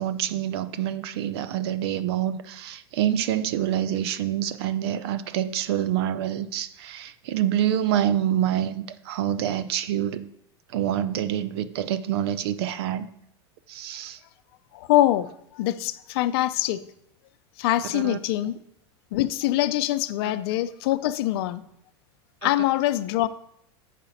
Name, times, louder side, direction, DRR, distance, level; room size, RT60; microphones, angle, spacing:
voice 1, 0.0-10.3 10.7-13.1 13.7-14.2 17.9-18.2 22.4-22.5, right 11 dB, 70° right, 0.6 m, -26 dB
voice 2, 14.7-16.8 17.6-18.6 19.1-21.6 22.4-23.3, left 14 dB, 65° left, 0.5 m, -24 dB
7.5 x 4.9 x 5.8 m
supercardioid pair, 120°, 14 cm